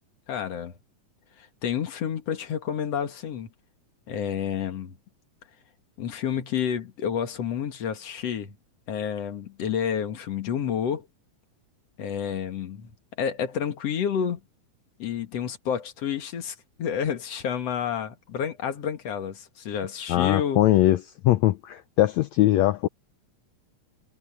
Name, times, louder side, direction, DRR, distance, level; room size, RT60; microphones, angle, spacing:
voice 1, 0.3-0.8 1.4-3.5 4.1-5.0 6.0-8.5 8.9-11.1 12.0-12.9 13.2-14.4 15.0-20.6, left 8 dB, 55° left, 2.6 m, -29 dB
voice 2, 20.1-22.9, left 15 dB, 85° left, 1.6 m, -21 dB
omnidirectional pair, 3.8 m